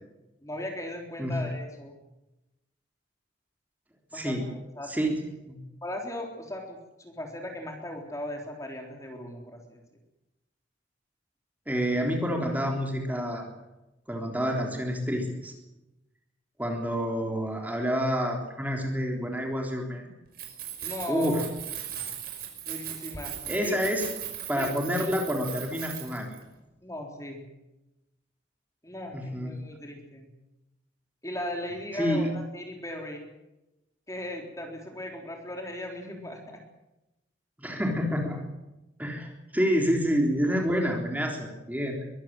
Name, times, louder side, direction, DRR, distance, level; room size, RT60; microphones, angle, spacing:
voice 1, 0.4-1.9 4.1-5.2 5.8-9.8 20.8-21.4 22.6-23.3 23.6-23.7 24.6-24.7 25.0-25.1 26.8-27.4 28.8-30.3 31.2-33.2 34.1-36.6, left 1 dB, 15° left, 2 dB, 3.8 m, -37 dB
voice 2, 4.1-4.4 4.8-5.1 5.5-5.6 11.7-13.5 14.1-15.5 16.6-20.1 21.1-21.4 23.4-24.1 24.5-26.4 29.1-29.5 31.9-32.3 37.6-38.4 39.0-42.0, equal, 10° right, 1 dB, 3.7 m, -28 dB
Keys jangling, 20.3-26.4, right 10 dB, 55° right, 5.4 m, -38 dB
23.0 x 14.5 x 9.1 m, 0.96 s
head